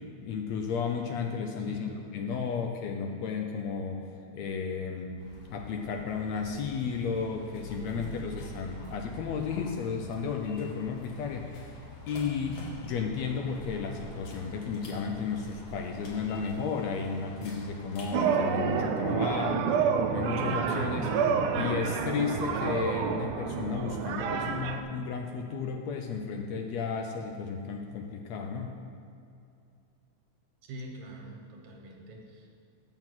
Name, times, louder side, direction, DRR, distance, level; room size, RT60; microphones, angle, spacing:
voice 1, 0.2-4.0 4.3-11.8 12.1-19.7 20.1-21.1 21.5-28.8, left 5 dB, 75° left, 3 dB, 1.8 m, -33 dB
voice 2, 1.6-2.0 30.7-32.6, right 1 dB, 70° right, 0 dB, 2.7 m, -45 dB
sound 1, 5.2-18.1, left 1 dB, 60° left, 2.5 m, -45 dB
sound 2, 18.1-24.8, right 6 dB, 90° right, 2.1 m, -29 dB
8.9 x 6.0 x 7.8 m, 2.6 s
omnidirectional pair, 3.5 m